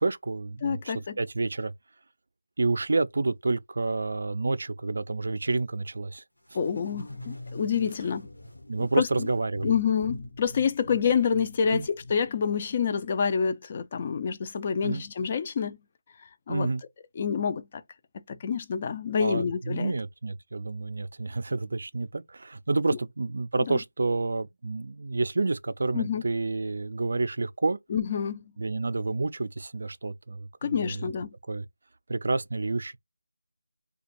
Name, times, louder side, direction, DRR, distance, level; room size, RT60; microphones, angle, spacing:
voice 1, 0.0-1.7 2.6-6.2 8.7-9.7 11.7-11.9 14.8-15.0 16.5-16.8 19.2-27.8 28.6-31.1 31.5-31.7 32.1-33.0, right 3 dB, 55° right, 0.3 m, -29 dB
voice 2, 0.6-1.2 6.6-8.3 9.0-9.3 9.6-15.8 16.5-16.7 17.2-17.7 18.3-19.9 23.7-23.8 25.9-26.2 27.9-28.4 30.6-31.3, left 6 dB, 30° left, 0.3 m, -27 dB
sound 1, 6.5-13.3, left 1 dB, 90° left, 1.1 m, -43 dB
2.5 x 2.3 x 2.9 m
figure-of-eight pair, 165°, 0 cm